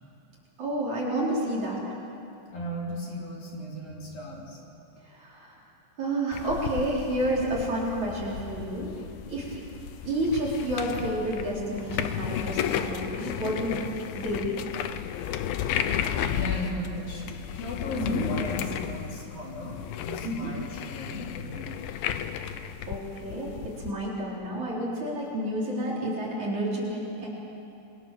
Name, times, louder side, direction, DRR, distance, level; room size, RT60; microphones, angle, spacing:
voice 1, 0.6-1.8 5.0-5.6 6.0-8.9 9.3-9.6 10.1-13.8 14.1-14.6 18.0-18.3 20.2-20.5 22.9-27.3, right 1 dB, 40° right, -5 dB, 5.2 m, -30 dB
voice 2, 2.5-4.6 9.4-9.5 16.3-19.8 20.0-22.0, left 1 dB, 50° left, -2 dB, 4.7 m, -36 dB
sound 1, 6.3-23.9, left 9 dB, 80° left, 2.2 m, -33 dB
27.0 x 24.0 x 7.1 m, 2.8 s
omnidirectional pair, 5.4 m